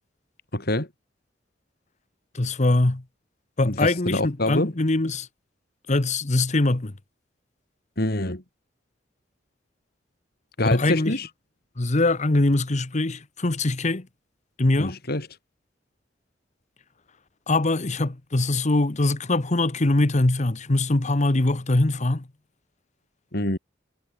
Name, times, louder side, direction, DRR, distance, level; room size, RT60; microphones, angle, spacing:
voice 1, 0.5-0.9 3.6-4.7 8.0-8.4 10.6-11.3 14.8-15.3 23.3-23.6, left 1 dB, 60° left, 4.5 m, -26 dB
voice 2, 2.3-3.0 3.6-5.3 5.9-6.9 10.6-11.1 11.8-14.1 14.6-15.0 17.5-22.3, left 2 dB, 40° left, 1.1 m, -22 dB
head